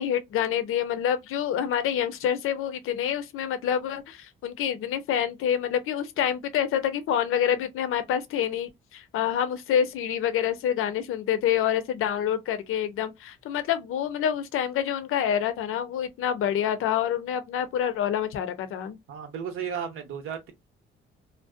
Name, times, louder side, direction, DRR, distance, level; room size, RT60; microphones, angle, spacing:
voice 1, 0.0-19.0, left 9 dB, 80° left, 0.5 m, -27 dB
voice 2, 19.1-20.5, right 7 dB, 80° right, 0.9 m, -34 dB
2.5 x 2.0 x 2.4 m
cardioid pair, 115°, 21 cm